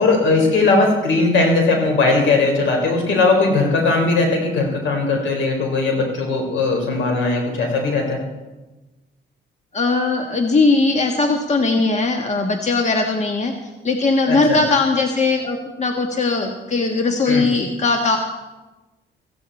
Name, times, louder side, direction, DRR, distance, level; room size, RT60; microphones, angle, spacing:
voice 1, 0.0-8.2 14.3-14.6 17.3-17.5, left 3 dB, 75° left, 2 dB, 4.7 m, -18 dB
voice 2, 9.7-13.5 13.8-18.2, left 3 dB, 35° left, 3 dB, 1.5 m, -19 dB
16.5 x 15.0 x 4.3 m, 1.1 s
cardioid pair, 90°, 20 cm